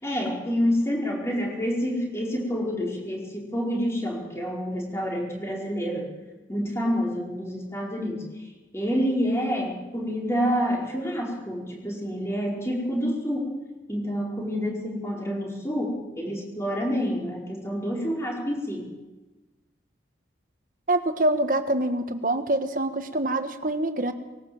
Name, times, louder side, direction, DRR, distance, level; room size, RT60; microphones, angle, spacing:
voice 1, 0.0-6.1 6.5-8.2 8.7-13.5 13.9-18.9, equal, 15° left, -1 dB, 4.8 m, -28 dB
voice 2, 20.9-24.1, right 1 dB, 45° right, 8 dB, 1.6 m, -25 dB
20.0 x 18.5 x 7.9 m, 1.1 s
head